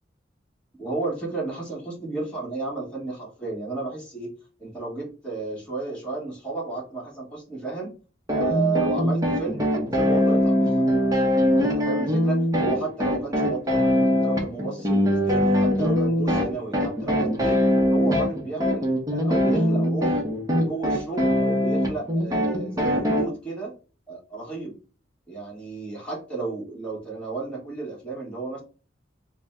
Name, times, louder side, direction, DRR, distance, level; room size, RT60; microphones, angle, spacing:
voice 1, 0.8-4.3 4.6-7.9 8.3-10.7 11.3-13.8 14.2-17.6 17.9-20.2 20.6-23.7 24.1-24.7 25.3-28.6, right 3 dB, 5° left, -4 dB, 1.5 m, -32 dB
sound 1, 8.3-23.2, equal, 20° right, 0.9 m, -22 dB
4.0 x 2.2 x 3.6 m, 0.36 s
head